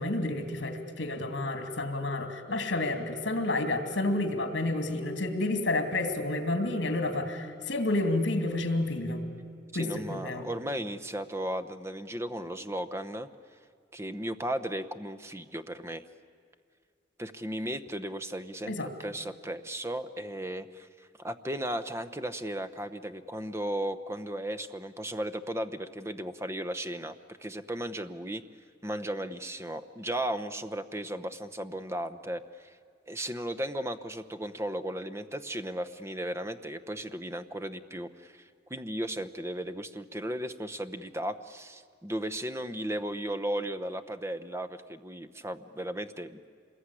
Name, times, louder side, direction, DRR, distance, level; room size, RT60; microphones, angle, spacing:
voice 1, 0.0-9.2 9.7-10.5 18.7-18.9, left 2 dB, 75° left, 7 dB, 2.7 m, -30 dB
voice 2, 9.7-13.3 13.9-16.0 17.2-28.4 28.8-32.8 33.1-46.4, right 1 dB, 15° right, 11 dB, 0.8 m, -35 dB
26.5 x 21.0 x 9.9 m, 2.2 s
head